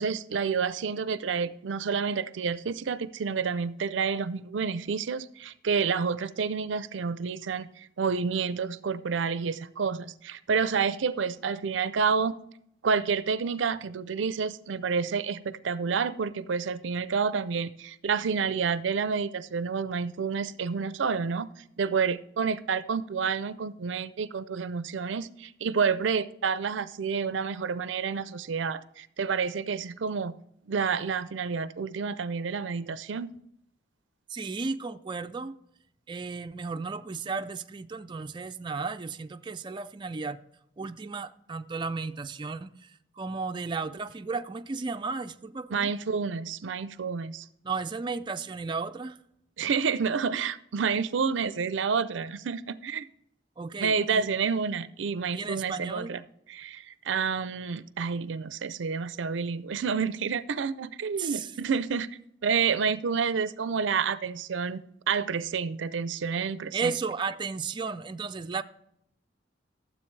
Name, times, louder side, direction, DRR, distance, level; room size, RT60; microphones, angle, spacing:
voice 1, 0.0-12.3 12.8-21.5 21.8-30.3 30.7-33.3 45.7-47.5 49.6-53.1 53.8-56.2 56.5-62.1 62.4-66.9, right 5 dB, 85° right, 0.5 m, -29 dB
voice 2, 34.3-35.5 36.1-40.4 40.8-42.7 43.2-45.9 47.6-49.2 53.6-54.4 55.3-56.1 61.2-61.5 66.7-68.6, right 4 dB, 25° right, 0.4 m, -34 dB
13.0 x 7.5 x 3.2 m
head